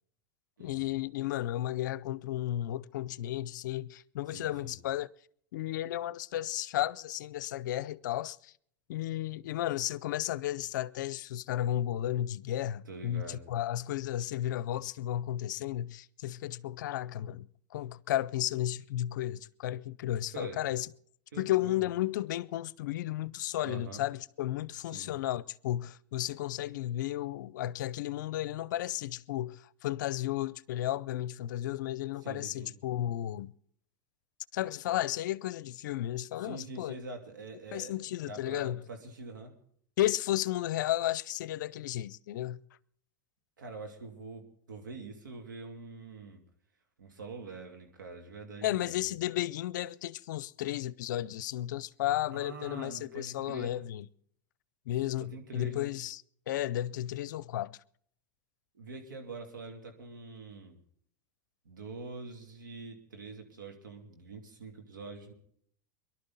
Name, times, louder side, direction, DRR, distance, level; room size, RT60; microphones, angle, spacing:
voice 1, 0.6-5.1 5.5-8.5 8.9-20.9 21.4-33.5 34.5-37.0 37.7-38.8 40.0-42.6 48.6-54.1 54.9-56.2 56.5-57.8, left 13 dB, 75° left, 0.5 m, -33 dB
voice 2, 4.3-4.7 12.8-13.4 20.3-20.7 21.3-21.8 23.6-24.0 24.9-25.1 32.2-32.8 36.4-39.6 43.6-46.4 47.0-48.9 52.3-53.8 55.3-55.9 58.7-60.8 61.6-65.3, right 3 dB, 90° right, 2.9 m, -45 dB
23.0 x 12.0 x 4.0 m
hypercardioid pair, 95°, 10 cm